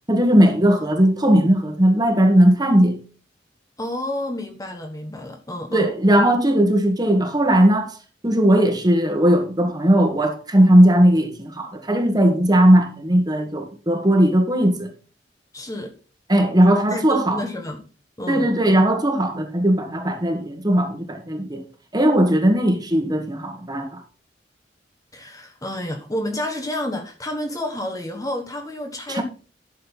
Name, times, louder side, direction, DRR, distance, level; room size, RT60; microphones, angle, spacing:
voice 1, 0.1-3.0 5.7-7.9 8.2-14.9 16.3-17.4 18.3-21.6 21.9-24.0 29.1-29.2, right 1 dB, 20° right, 1.5 m, -18 dB
voice 2, 3.8-5.9 15.5-16.0 16.9-17.8 18.2-18.6 25.1-29.2, left 1 dB, 20° left, 1.2 m, -30 dB
11.5 x 6.7 x 4.0 m
head